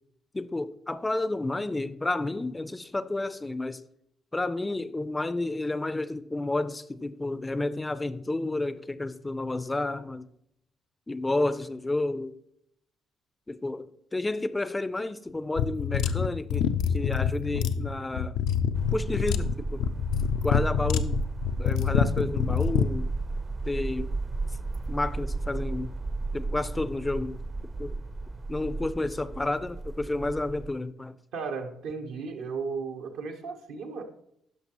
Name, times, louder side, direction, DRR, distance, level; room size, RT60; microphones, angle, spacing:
voice 1, 0.3-3.8 4.3-10.3 11.1-12.3 13.5-16.7 16.9-18.4 18.9-19.9 20.4-21.2 21.6-23.1 23.7-24.1 24.9-25.9 26.3-27.4 27.8-27.9 28.5-31.2, left 2 dB, 20° left, 0.4 m, -31 dB
sound 1, 15.6-22.9, left 8 dB, 75° left, 0.4 m, -26 dB
sound 2, 18.7-30.7, right 3 dB, 30° right, 0.5 m, -34 dB
voice 2, 31.3-34.0, right 5 dB, 75° right, 0.9 m, -35 dB
10.5 x 5.9 x 3.0 m
supercardioid pair, 60°, 0 cm